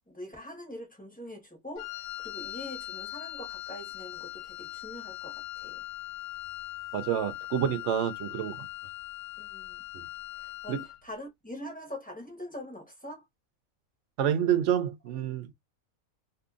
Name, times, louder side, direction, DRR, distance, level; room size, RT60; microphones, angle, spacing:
voice 1, 0.0-5.8 9.4-9.8 10.3-10.8 11.0-13.3, left 1 dB, 5° left, 0.9 m, -43 dB
Wind instrument woodwind instrument, 1.8-11.0, left 15 dB, 85° left, 1.0 m, -40 dB
voice 2, 6.9-8.7 9.9-10.0 10.7-10.8 14.2-15.5, right 9 dB, 65° right, 0.8 m, -28 dB
2.7 x 2.6 x 2.4 m
omnidirectional pair, 1.5 m